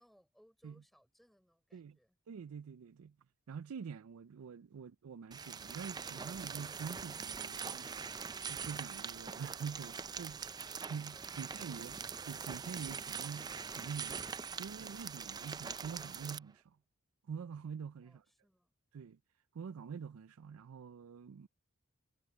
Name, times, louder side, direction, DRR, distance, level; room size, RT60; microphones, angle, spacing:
voice 1, 0.0-2.2 10.4-11.9 18.0-18.7, equal, ahead, 3.6 m, -69 dB
voice 2, 2.3-3.2 3.5-7.9 8.5-10.5 10.9-16.8 17.3-18.2 18.9-19.2 19.5-21.5, right 6 dB, 85° right, 0.4 m, -46 dB
sound 1, 5.3-16.4, right 6 dB, 20° right, 0.4 m, -43 dB
head